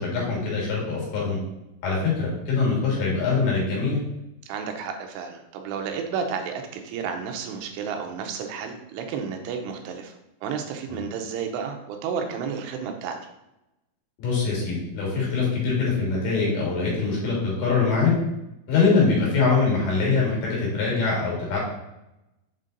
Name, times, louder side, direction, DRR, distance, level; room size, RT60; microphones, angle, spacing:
voice 1, 0.0-1.4 1.8-4.0 14.2-18.1 18.7-21.6, left 4 dB, 65° left, -4 dB, 3.7 m, -23 dB
voice 2, 4.5-10.1 10.4-13.2, right 6 dB, 85° right, 4 dB, 2.9 m, -31 dB
7.9 x 3.8 x 3.9 m, 0.91 s
omnidirectional pair, 5.1 m